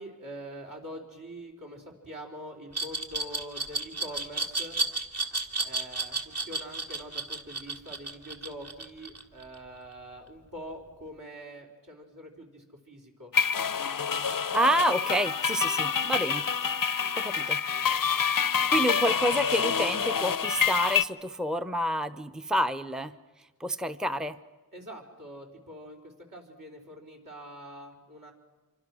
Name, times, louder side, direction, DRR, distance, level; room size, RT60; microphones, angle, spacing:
voice 1, 0.0-4.8 5.6-13.3 24.7-28.3, equal, 60° right, -1 dB, 4.8 m, -44 dB
Glass, 2.7-9.6, right 3 dB, 40° right, 2.2 m, -32 dB
sound 1, 13.3-21.0, left 7 dB, 60° left, 0.7 m, -27 dB
voice 2, 14.3-16.4 17.2-17.6 18.7-23.1 23.6-24.4, right 1 dB, ahead, 10 dB, 0.8 m, -28 dB
27.0 x 24.5 x 6.3 m, 1.3 s
wide cardioid pair, 45°, 37 cm